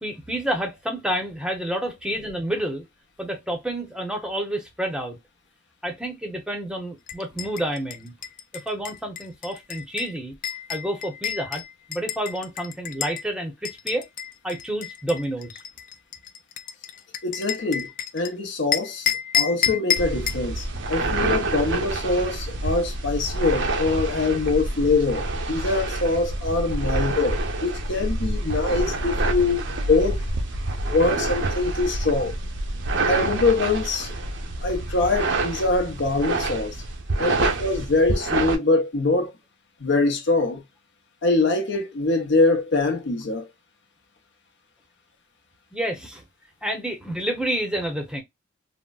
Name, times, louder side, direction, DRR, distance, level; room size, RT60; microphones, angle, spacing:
voice 1, 0.0-2.8 3.2-5.2 5.8-8.1 8.7-10.3 10.7-11.6 11.9-14.1 14.4-15.6 26.8-26.9 29.4-29.5 37.2-37.3 45.7-46.2 46.6-48.2, right 1 dB, 5° right, 0.7 m, -29 dB
sound 1, 7.1-13.2 13.6-18.3 18.7-20.5, left 9 dB, 45° left, 0.4 m, -29 dB
voice 2, 17.2-17.9 18.1-19.1 19.3-30.2 30.9-32.3 33.1-34.1 34.6-36.7 37.2-39.3 39.8-40.6 41.2-43.5, left 3 dB, 60° left, 0.8 m, -23 dB
sound 2, 20.0-38.6, right 2 dB, 65° right, 0.7 m, -27 dB
3.8 x 2.1 x 2.3 m
head